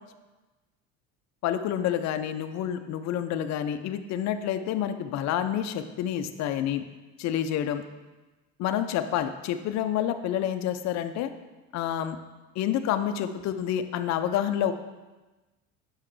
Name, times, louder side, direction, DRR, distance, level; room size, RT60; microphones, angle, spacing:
voice 1, 1.4-6.8 7.2-7.8 8.6-11.3 11.7-12.2 12.6-14.7, left 10 dB, 45° left, 9 dB, 0.5 m, -28 dB
6.4 x 5.7 x 3.2 m, 1.2 s
supercardioid pair, 85°, 38 cm